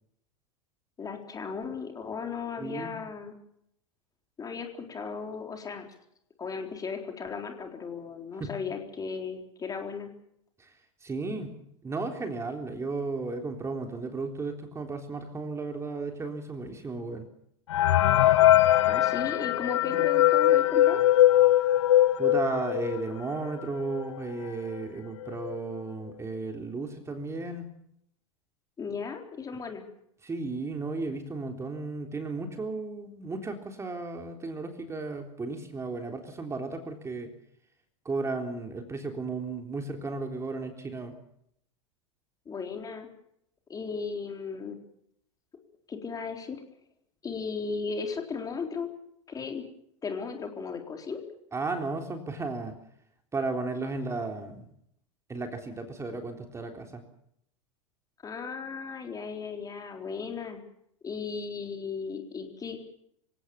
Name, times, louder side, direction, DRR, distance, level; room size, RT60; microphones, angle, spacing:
voice 1, 1.0-3.4 4.4-5.9 6.4-10.1 18.8-21.0 28.8-29.9 42.5-43.1 43.7-44.8 45.9-46.6 47.2-48.9 49.3-49.6 50.0-51.2 58.2-60.6 61.0-62.8, left 5 dB, 20° left, 4 dB, 4.0 m, -36 dB
voice 2, 2.6-3.0 8.4-8.5 10.6-10.7 11.0-11.5 11.8-17.3 19.9-20.0 22.2-27.7 30.2-37.3 38.1-41.1 51.5-52.7 53.3-54.7 55.3-57.0, right 3 dB, 15° right, 4 dB, 3.7 m, -34 dB
sound 1, 17.7-23.1 23.6-23.7 23.9-24.0 24.8-24.9 25.2-25.6, left 13 dB, 65° left, 1.0 m, -21 dB
26.5 x 17.0 x 7.1 m, 0.73 s
figure-of-eight pair, 85°, 16 cm